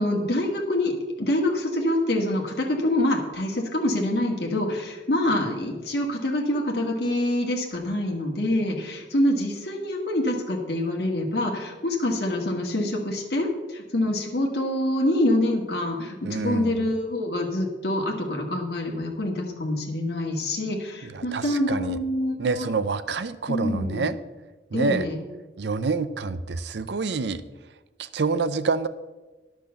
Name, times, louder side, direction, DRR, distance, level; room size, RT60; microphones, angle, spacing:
voice 1, 0.0-22.7 23.5-24.1 24.7-25.2, left 1 dB, 65° left, 0 dB, 1.7 m, -26 dB
voice 2, 16.2-16.8 21.0-22.0 22.4-24.2 24.7-25.1 25.6-27.4 28.0-28.9, right 4 dB, 75° right, 13 dB, 0.5 m, -27 dB
10.0 x 6.0 x 6.9 m, 1.2 s
head